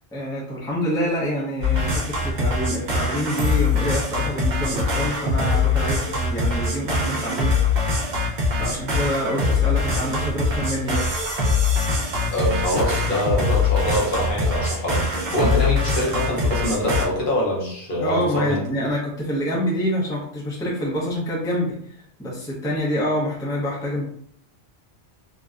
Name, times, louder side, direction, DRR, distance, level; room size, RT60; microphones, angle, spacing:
voice 1, 0.1-7.6 8.6-11.1 18.0-24.1, equal, 5° left, -5 dB, 0.5 m, -26 dB
sound 1, 1.6-17.1, left 3 dB, 50° right, 0.6 m, -23 dB
voice 2, 12.3-18.6, left 1 dB, 55° left, -3 dB, 0.8 m, -24 dB
2.7 x 2.1 x 2.3 m, 0.65 s
omnidirectional pair, 1.1 m